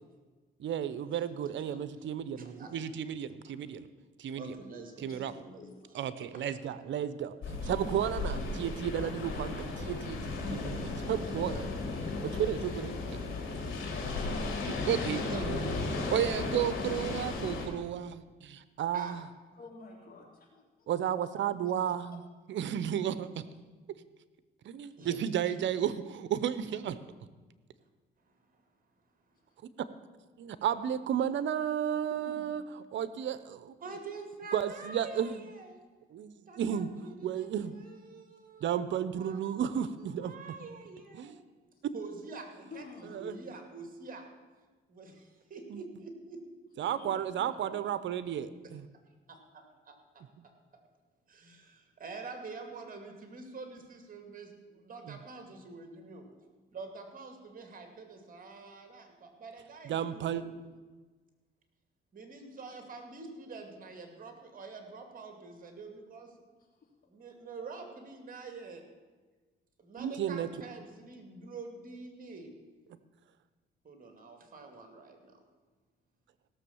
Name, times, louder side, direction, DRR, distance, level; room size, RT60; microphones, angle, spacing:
voice 1, 0.6-3.9 4.2-4.5 5.0-5.3 5.9-11.8 12.2-13.2 14.6-19.2 20.9-22.2 22.5-23.5 24.6-27.0 30.4-32.6 32.9-33.7 34.5-35.4 36.1-36.9 37.2-37.7 38.6-40.4 41.1-41.4 43.1-43.3 45.7-45.8 46.8-48.9 55.1-55.2 59.8-60.4 70.0-70.5, right 9 dB, 70° right, 14 dB, 0.8 m, -33 dB
voice 2, 2.4-2.8 4.4-5.7 6.3-6.5 7.6-7.7 15.3-16.1 18.9-19.2 25.0-25.2 28.3-28.6 33.8-35.8 36.5-38.7 39.2-41.4 41.9-44.2 44.9-46.4 49.3-50.5 51.3-56.3 56.7-60.5 62.1-66.3 67.1-68.8 69.8-72.5 73.8-75.4, right 4 dB, 45° right, 5 dB, 2.5 m, -46 dB
sound 1, 7.4-17.7, left 3 dB, 75° left, 3.5 m, -35 dB
voice 3, 13.9-14.6 19.5-20.9 25.0-25.1 32.1-32.5 42.7-43.5 47.0-47.9 66.7-66.9, left 3 dB, 45° left, -1 dB, 3.6 m, -50 dB
16.5 x 7.0 x 7.1 m, 1.3 s
cardioid pair, 90°, 20 cm